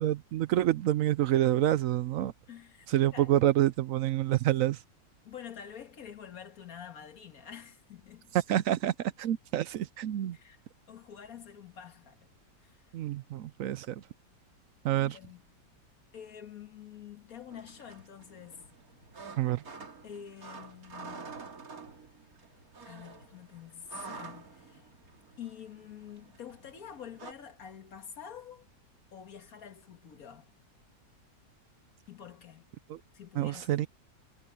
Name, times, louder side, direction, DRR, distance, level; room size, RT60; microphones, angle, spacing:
voice 1, 0.0-2.3 2.9-4.8 8.5-10.4 12.9-14.0 14.8-15.2 19.4-19.6 32.9-33.0 33.4-33.9, right 13 dB, 70° right, 0.8 m, -27 dB
voice 2, 2.5-2.9 3.1-3.4 5.2-8.3 10.3-10.6 10.9-12.3 12.6-12.8 14.9-15.4 16.1-18.7 20.0-21.4 22.9-24.8 25.4-28.7 29.1-30.5 32.1-32.7 33.1-33.9, left 8 dB, 55° left, 2.0 m, -47 dB
sound 1, 17.5-27.3, right 5 dB, 55° right, 2.8 m, -48 dB
omnidirectional pair, 1.8 m